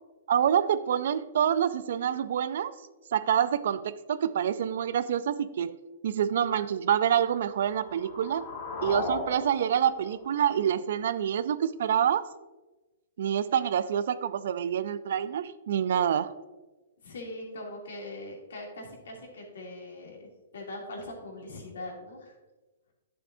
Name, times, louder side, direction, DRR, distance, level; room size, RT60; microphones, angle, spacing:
voice 1, 0.3-2.7 3.1-5.8 6.0-8.4 8.8-12.3 13.2-16.3, right 9 dB, 65° right, 15 dB, 0.4 m, -27 dB
sound 1, 7.2-11.2, left 4 dB, 45° left, 2.0 m, -38 dB
voice 2, 17.0-20.3 20.5-22.3, left 1 dB, 75° left, -1 dB, 2.7 m, -41 dB
10.0 x 6.9 x 2.7 m, 1.1 s
hypercardioid pair, 135°, 0 cm